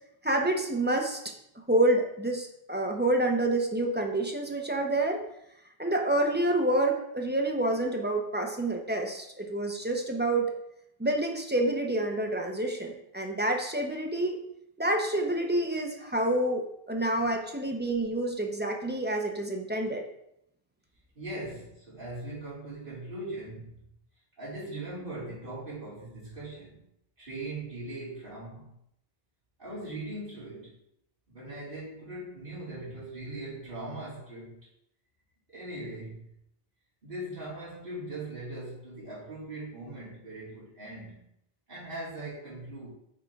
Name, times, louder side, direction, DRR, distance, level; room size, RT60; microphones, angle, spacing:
voice 1, 0.2-1.2 1.7-5.2 5.8-10.5 11.0-14.4 14.8-20.0, right 1 dB, 10° right, 2 dB, 0.7 m, -28 dB
voice 2, 21.1-23.8 24.4-26.9 27.2-28.7 29.6-30.8 31.3-34.6 35.5-36.3 37.0-41.3 41.7-42.9, right 2 dB, 60° right, -8 dB, 3.1 m, -40 dB
6.2 x 3.8 x 4.7 m, 0.77 s
omnidirectional pair, 1.0 m